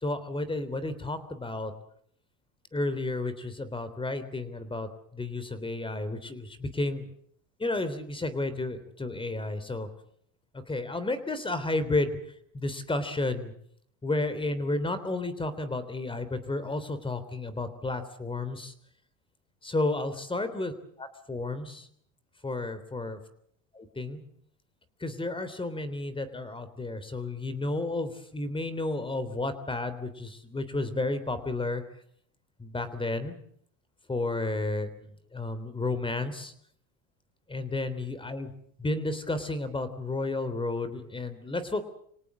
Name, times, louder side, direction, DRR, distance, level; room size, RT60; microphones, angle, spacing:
voice 1, 0.0-1.7 2.7-7.1 7.6-9.9 10.7-12.2 12.5-13.5 14.0-18.7 19.6-20.7 21.0-21.9 22.4-23.2 23.7-24.2 25.0-31.8 32.6-33.3 34.1-34.9 35.3-36.5 37.5-38.5 38.8-41.8, left 2 dB, 15° left, 13 dB, 3.4 m, -32 dB
26.5 x 18.0 x 7.6 m, 0.65 s
supercardioid pair, 105°, 38 cm